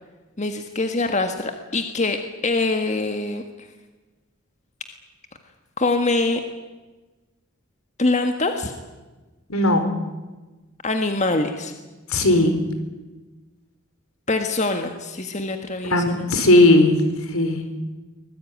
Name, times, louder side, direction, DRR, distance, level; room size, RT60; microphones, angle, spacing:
voice 1, 0.4-3.7 5.8-6.4 8.0-8.7 10.8-11.7 14.3-16.5, left 2 dB, 30° left, 6 dB, 1.7 m, -24 dB
voice 2, 9.5-9.8 12.1-12.6 15.9-17.0 17.3-17.6, left 2 dB, 75° left, 8 dB, 4.4 m, -16 dB
24.0 x 21.0 x 9.5 m, 1.2 s
head